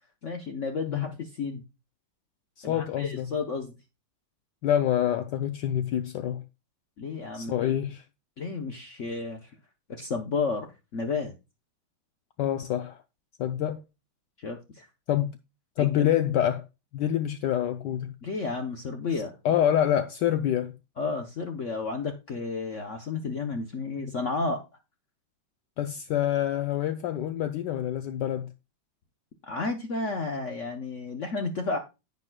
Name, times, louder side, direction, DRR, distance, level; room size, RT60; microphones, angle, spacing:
voice 1, 0.2-1.6 2.6-3.7 7.0-7.8 8.4-9.5 9.9-11.3 14.4-14.9 15.8-16.1 18.2-19.3 21.0-24.6 29.4-31.8, left 4 dB, 50° left, 0.9 m, -32 dB
voice 2, 2.6-3.3 4.6-6.4 7.3-8.0 12.4-13.0 13.4-13.8 15.1-15.3 15.8-16.6 16.9-18.1 19.4-20.8 25.8-28.5, left 10 dB, 75° left, 1.1 m, -26 dB
10.5 x 8.3 x 2.3 m
omnidirectional pair, 2.2 m